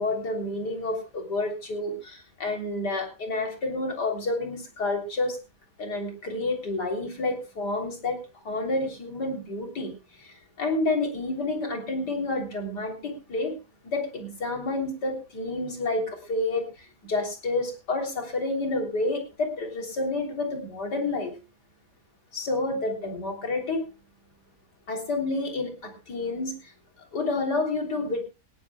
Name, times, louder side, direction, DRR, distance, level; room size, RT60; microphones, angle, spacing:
voice 1, 0.0-5.4 5.8-8.2 8.4-9.9 10.2-13.6 13.8-21.3 22.3-23.8 24.9-26.7 27.1-28.2, left 2 dB, 80° left, 4 dB, 4.0 m, -29 dB
19.0 x 16.5 x 2.3 m, 0.30 s
omnidirectional pair, 1.7 m